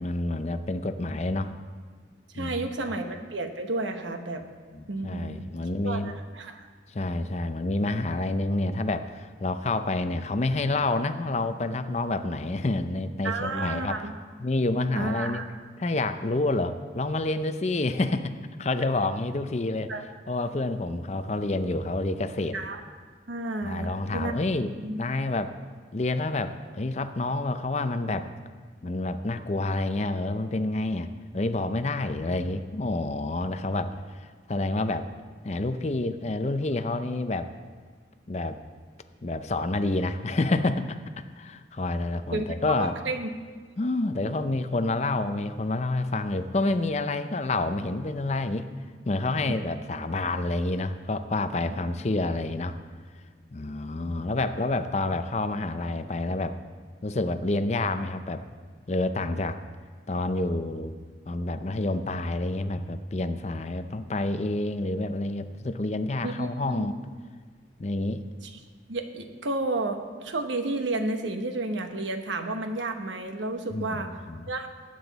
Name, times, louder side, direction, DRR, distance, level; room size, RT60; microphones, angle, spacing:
voice 1, 0.0-1.5 2.3-2.7 4.7-6.1 6.9-14.0 14.4-15.4 15.8-19.9 20.3-22.6 23.6-24.7 25.0-25.5 25.9-28.3 28.8-35.1 35.4-37.5 38.3-38.6 39.2-41.0 41.4-43.0 43.8-48.7 49.0-52.7 53.5-56.6 57.0-58.4 58.9-59.6 60.1-60.9 61.3-66.9 67.8-68.2 73.7-74.5, left 2 dB, 35° left, 9 dB, 0.5 m, -28 dB
voice 2, 2.3-4.4 4.9-5.4 5.8-6.7 13.2-14.1 15.0-15.4 19.9-20.0 22.5-22.8 23.3-24.3 24.8-25.0 42.3-43.3 49.4-49.6 66.2-66.9 68.5-68.6 68.9-74.1 74.5-74.7, right 2 dB, 85° right, 6 dB, 1.0 m, -31 dB
18.5 x 8.0 x 4.1 m, 1.5 s
head